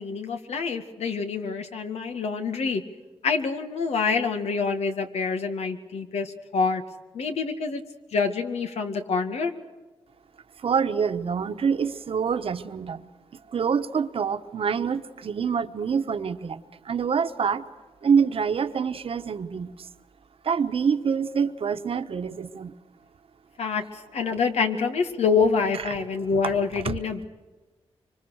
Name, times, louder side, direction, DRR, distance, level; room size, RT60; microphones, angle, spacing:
voice 1, 0.0-2.8 3.2-6.8 7.1-7.8 8.1-9.5 23.6-23.8 24.1-27.2, left 5 dB, 90° left, 6 dB, 2.2 m, -26 dB
voice 2, 10.6-13.0 13.5-17.6 18.0-19.9 20.4-22.8 26.4-27.0, right 6 dB, 65° right, 9 dB, 1.3 m, -26 dB
25.5 x 25.0 x 6.5 m, 1.2 s
cardioid pair, 90°, 11 cm